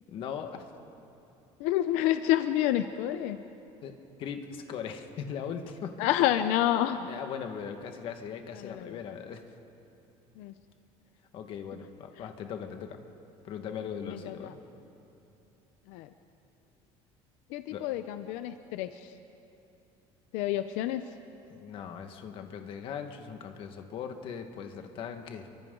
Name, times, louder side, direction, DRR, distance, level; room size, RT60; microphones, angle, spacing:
voice 1, 0.1-0.7 3.8-6.0 7.1-9.4 11.3-13.0 13.4-14.6 17.7-17.9 21.5-25.5, left 7 dB, 45° left, 6 dB, 1.6 m, -39 dB
voice 2, 1.6-3.4 6.0-7.1 8.6-9.0 10.4-10.5 14.1-14.5 15.9-16.1 17.5-19.1 20.3-21.0, left 12 dB, 85° left, 10 dB, 0.7 m, -28 dB
29.0 x 24.0 x 3.9 m, 2.9 s
cardioid pair, 165°, 12 cm